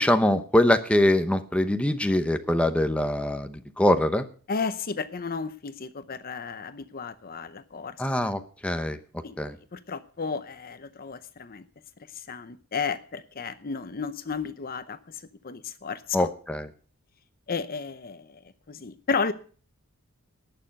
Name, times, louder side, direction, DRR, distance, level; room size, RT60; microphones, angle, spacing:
voice 1, 0.0-4.3 8.0-9.0 9.4-9.5 16.1-16.7, left 1 dB, 5° left, 8 dB, 0.9 m, -23 dB
voice 2, 4.5-8.0 9.2-9.4 9.7-11.6 12.1-16.3 17.5-18.4 18.7-19.3, left 5 dB, 40° left, 12 dB, 0.7 m, -33 dB
19.0 x 6.8 x 5.3 m, 0.42 s
head